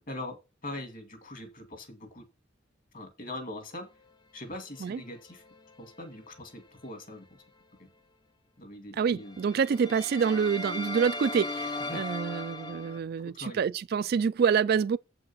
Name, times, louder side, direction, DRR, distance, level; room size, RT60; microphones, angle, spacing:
voice 1, 0.1-2.3 2.9-3.9 4.3-5.4 5.8-7.4 7.8-7.9 8.6-9.4 11.8-12.0 13.3-13.6, left 1 dB, 45° left, 1.9 m, -42 dB
sound 1, 4.7-6.5 6.8-7.1 9.3-13.0, left 2 dB, 25° left, 0.6 m, -38 dB
voice 2, 9.0-15.0, right 6 dB, 55° right, 0.3 m, -27 dB
7.6 x 5.0 x 5.5 m
head